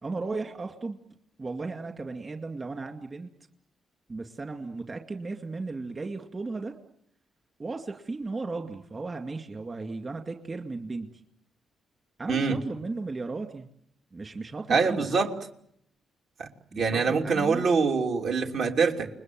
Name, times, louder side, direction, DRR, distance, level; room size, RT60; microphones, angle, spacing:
voice 1, 0.0-1.0 1.4-3.3 4.1-6.8 7.6-11.1 12.2-13.7 14.1-15.2 16.7-17.7, right 3 dB, 30° right, 5 dB, 2.2 m, -35 dB
voice 2, 14.7-15.3 16.4-16.5 16.7-19.1, right 5 dB, 70° right, 2 dB, 3.0 m, -24 dB
29.0 x 21.0 x 7.7 m, 0.73 s
cardioid pair, 90°, 0 cm